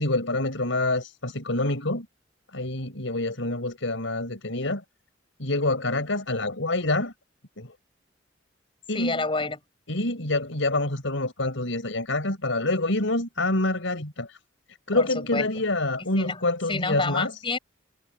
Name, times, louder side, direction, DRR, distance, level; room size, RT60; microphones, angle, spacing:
voice 1, 0.0-2.1 2.5-4.8 5.4-7.1 7.6-7.7 8.9-9.2 9.9-14.3 14.9-17.3, left 2 dB, 80° left, 4.8 m, -26 dB
voice 2, 8.9-9.6 14.9-15.5 16.0-16.4 16.7-17.6, left 3 dB, 25° left, 6.4 m, -29 dB
head